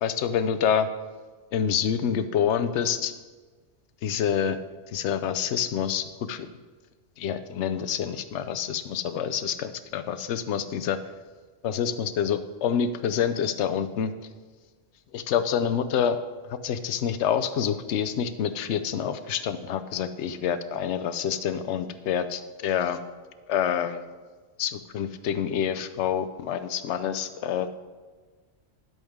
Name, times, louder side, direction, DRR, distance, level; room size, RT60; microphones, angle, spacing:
voice 1, 0.0-0.9 1.5-3.1 4.0-4.6 4.9-6.5 7.2-11.0 11.6-14.1 15.1-16.2 16.5-23.0 23.5-24.0 24.6-27.7, left 8 dB, 70° left, 11 dB, 0.9 m, -27 dB
10.5 x 8.1 x 3.6 m, 1.4 s
omnidirectional pair, 1.2 m